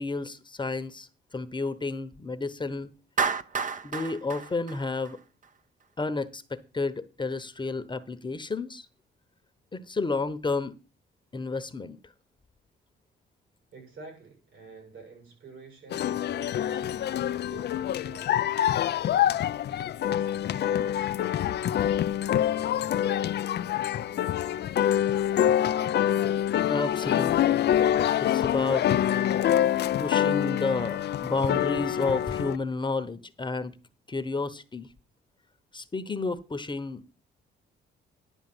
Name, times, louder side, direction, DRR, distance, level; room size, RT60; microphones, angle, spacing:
voice 1, 0.0-2.9 3.8-5.2 6.0-8.9 9.7-10.7 11.3-12.0 26.7-27.7 28.2-28.9 30.0-33.8 34.1-34.9 35.7-37.0, left 3 dB, 25° left, 1.0 m, -31 dB
Clapping, 3.2-5.5, right 5 dB, 40° right, 0.8 m, -30 dB
voice 2, 13.7-16.9 17.5-23.3, right 4 dB, 75° right, 7.7 m, -50 dB
sound 1, 15.9-32.6, left 11 dB, 60° left, 0.5 m, -26 dB
11.0 x 4.9 x 7.8 m
cardioid pair, 90°, 20 cm